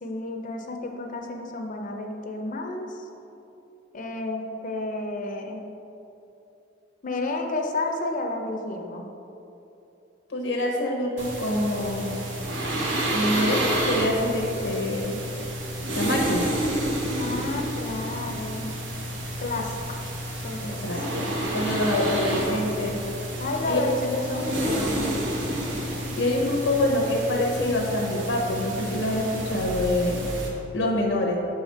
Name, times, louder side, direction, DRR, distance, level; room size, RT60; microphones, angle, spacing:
voice 1, 0.0-2.9 3.9-5.7 7.0-9.1 17.2-18.8 19.4-19.7 20.4-20.9 23.4-25.4, left 2 dB, 45° left, 2 dB, 0.6 m, -31 dB
voice 2, 10.3-12.2 13.1-15.2 15.9-16.5 20.6-23.0 23.7-23.8 24.8-24.9 26.2-30.3 30.7-31.4, left 1 dB, 90° left, 0 dB, 0.9 m, -26 dB
sound 1, 11.2-30.5, right 1 dB, 75° right, 1.0 m, -30 dB
6.7 x 4.9 x 4.2 m, 2.9 s
head